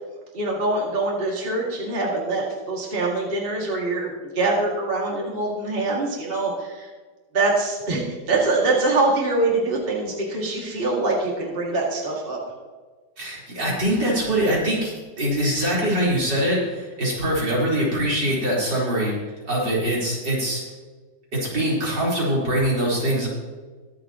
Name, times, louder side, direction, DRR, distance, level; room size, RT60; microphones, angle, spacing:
voice 1, 0.3-6.9 7.3-12.4, right 2 dB, 30° right, -3 dB, 2.5 m, -24 dB
voice 2, 13.2-19.1 19.5-20.6 21.3-23.3, right 1 dB, 75° right, -6 dB, 4.9 m, -23 dB
23.0 x 7.8 x 3.0 m, 1.4 s
omnidirectional pair, 1.9 m